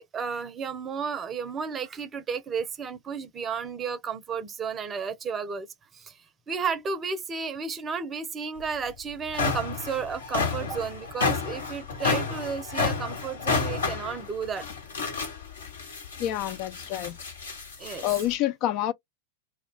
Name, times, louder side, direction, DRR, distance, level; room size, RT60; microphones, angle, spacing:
voice 1, 0.0-5.7 5.9-6.2 6.5-14.7 17.8-18.1, right 6 dB, 20° right, 0.6 m, -33 dB
sound 1, 8.6-8.7 9.1-18.3, left 4 dB, 70° left, 1.1 m, -31 dB
voice 2, 16.2-17.2 18.0-18.9, left 13 dB, 40° left, 0.3 m, -28 dB
2.3 x 2.2 x 3.8 m
figure-of-eight pair, 90°, 0 cm